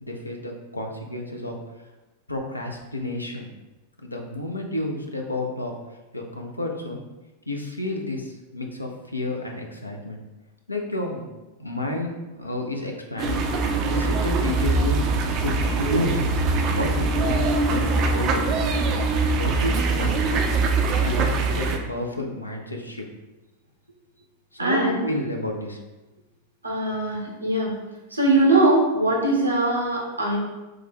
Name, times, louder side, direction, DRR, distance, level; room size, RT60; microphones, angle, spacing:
voice 1, 0.0-1.6 2.3-3.5 4.0-5.7 6.1-7.0 7.5-10.2 10.7-11.2 11.6-13.4 13.8-15.0 15.4-16.2 16.7-18.4 19.2-20.5 21.0-23.0 24.5-25.8, left 2 dB, 85° left, 1 dB, 0.4 m, -30 dB
sound 1, 13.2-21.8, right 3 dB, 35° right, 0.3 m, -23 dB
voice 2, 24.6-25.0 26.6-27.7 28.1-30.4, right 2 dB, 85° right, -2 dB, 0.7 m, -21 dB
3.1 x 2.1 x 3.7 m, 1.1 s
figure-of-eight pair, 90°, 0 cm